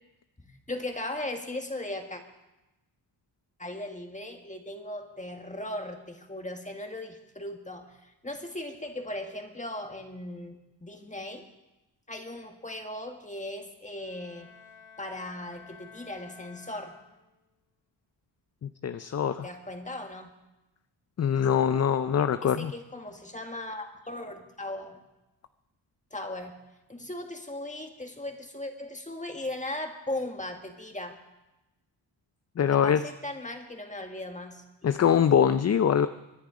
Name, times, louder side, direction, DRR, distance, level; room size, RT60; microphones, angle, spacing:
voice 1, 0.4-2.2 3.6-11.5 12.1-14.5 15.0-17.0 19.4-20.3 22.4-25.0 26.1-26.6 26.9-31.2 32.7-34.6, left 1 dB, 15° left, 4 dB, 1.9 m, -38 dB
Bowed string instrument, 14.0-17.5, left 6 dB, 90° left, 4.8 m, -52 dB
voice 2, 18.6-19.5 21.2-22.7 32.6-33.0 34.8-36.1, left 8 dB, 35° left, 11 dB, 0.5 m, -23 dB
24.0 x 10.5 x 5.1 m, 1.0 s
cardioid pair, 80°, 45 cm